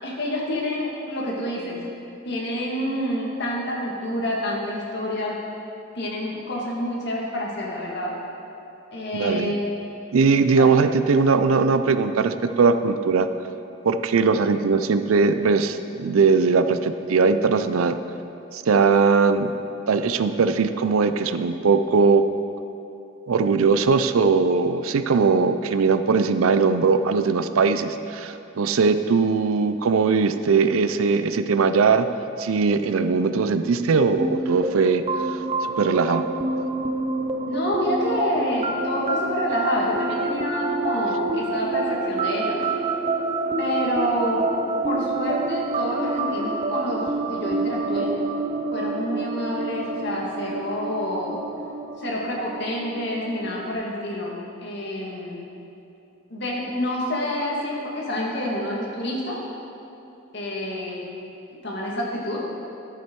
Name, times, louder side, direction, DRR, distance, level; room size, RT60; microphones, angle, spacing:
voice 1, 0.0-1.8 2.3-5.4 5.9-8.1 8.9-9.6 10.6-10.7 37.5-42.6 43.6-44.4 44.8-47.0 47.3-48.1 48.7-51.4 52.0-55.4 56.3-59.4 60.3-61.1 61.6-62.4, left 1 dB, 55° left, -4 dB, 2.0 m, -28 dB
voice 2, 9.1-9.5 10.1-13.3 13.8-18.0 18.5-19.5 19.9-22.3 23.3-32.1 32.4-35.0 35.3-35.4 35.8-36.3, right 4 dB, 80° right, 10 dB, 0.5 m, -20 dB
sound 1, 34.2-53.7, right 3 dB, 30° right, 0.5 m, -27 dB
12.5 x 7.7 x 4.6 m, 2.8 s
head